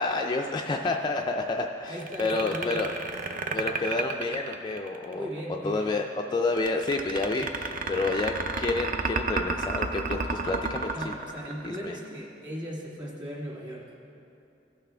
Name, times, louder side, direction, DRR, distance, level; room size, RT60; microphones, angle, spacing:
voice 1, 0.0-2.9 3.5-5.3 5.6-11.1 11.6-12.0, left 3 dB, 25° left, 2 dB, 0.3 m, -29 dB
voice 2, 1.8-2.9 5.1-5.9 10.9-13.9, equal, 25° right, -4 dB, 1.9 m, -38 dB
sound 1, 2.0-5.1 6.6-12.1, right 4 dB, 45° right, 0.5 m, -31 dB
16.5 x 5.9 x 3.4 m, 2.7 s
head